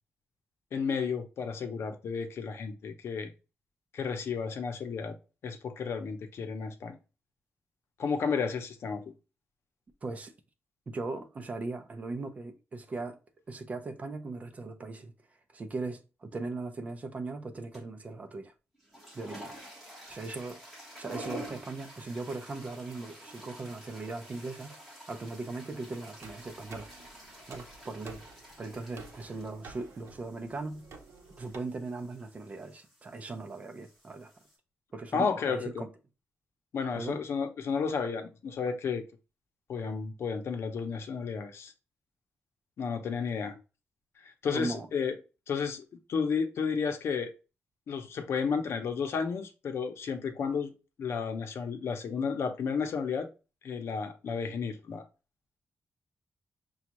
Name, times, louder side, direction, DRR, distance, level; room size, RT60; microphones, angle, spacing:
voice 1, 0.7-3.3 3.9-5.2 5.4-7.0 8.0-9.1 35.1-35.9 36.7-39.0 39.7-41.7 42.8-43.6 44.2-45.2 45.5-45.8 46.1-47.3 47.9-50.7 51.0-53.3 53.6-55.1, left 5 dB, 70° left, 0.7 m, -32 dB
voice 2, 10.0-10.3 10.9-13.2 13.5-15.1 15.5-18.5 19.1-19.8 20.1-20.6 21.0-24.7 25.1-26.9 27.5-28.2 28.6-30.9 31.4-34.3 34.9-35.9 36.9-37.2 44.5-44.9, right 3 dB, 35° right, 0.6 m, -39 dB
sound 1, 17.7-18.1 18.7-34.6, right 1 dB, ahead, 1.4 m, -49 dB
sound 2, 26.2-31.6, right 4 dB, 75° right, 0.8 m, -51 dB
6.1 x 2.3 x 2.9 m
wide cardioid pair, 160°, 5 cm